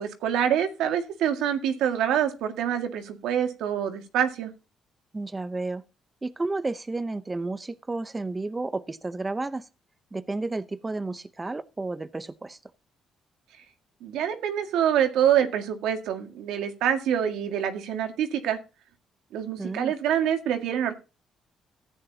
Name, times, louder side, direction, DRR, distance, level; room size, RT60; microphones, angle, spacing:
voice 1, 0.0-4.5 14.0-18.6 19.3-20.9, right 9 dB, 90° right, 1.9 m, -26 dB
voice 2, 5.1-5.8 6.2-9.7 10.1-12.6 19.6-19.9, right 3 dB, 20° right, 0.7 m, -32 dB
14.5 x 9.5 x 2.8 m
cardioid pair, 90°, 0 cm